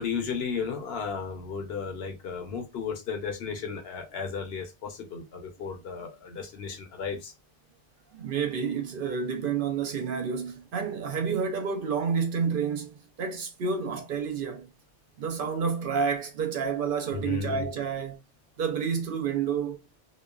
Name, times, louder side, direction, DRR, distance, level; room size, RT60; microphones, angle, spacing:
voice 1, 0.0-7.3 17.1-17.6, left 6 dB, 60° left, 0.9 m, -34 dB
voice 2, 8.1-14.7 15.2-18.2 18.6-19.8, right 6 dB, 55° right, 0.7 m, -29 dB
3.0 x 2.1 x 2.3 m
omnidirectional pair, 1.2 m